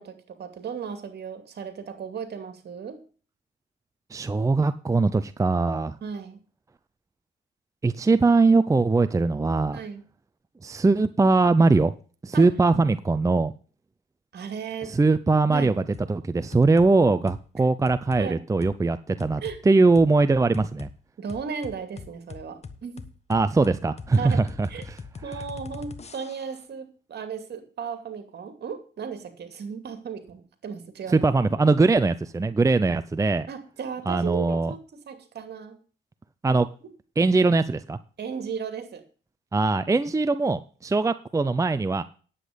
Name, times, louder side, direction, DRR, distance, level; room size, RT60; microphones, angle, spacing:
voice 1, 0.0-3.0 6.0-6.4 9.7-10.1 12.3-12.5 14.3-15.0 15.5-15.7 18.2-18.4 19.4-19.6 21.2-23.0 24.2-24.4 24.7-24.8 25.2-31.3 33.5-35.8 38.2-39.0, right 6 dB, 55° right, 8 dB, 2.5 m, -35 dB
voice 2, 4.1-6.0 7.8-9.8 10.6-11.9 12.2-13.5 14.9-20.9 23.3-25.0 31.1-33.5 34.1-34.7 36.4-36.7 37.2-38.0 39.5-42.0, right 3 dB, 15° right, 12 dB, 0.6 m, -21 dB
sound 1, 15.9-16.1 16.5-16.9 17.3-17.5 17.9-18.3 18.6-18.8 19.2-19.6 20.0-20.1 20.5-20.9 21.3-26.6, left 5 dB, 35° left, 1.2 m, -41 dB
9.9 x 8.3 x 5.2 m, 0.39 s
cardioid pair, 90°, 20 cm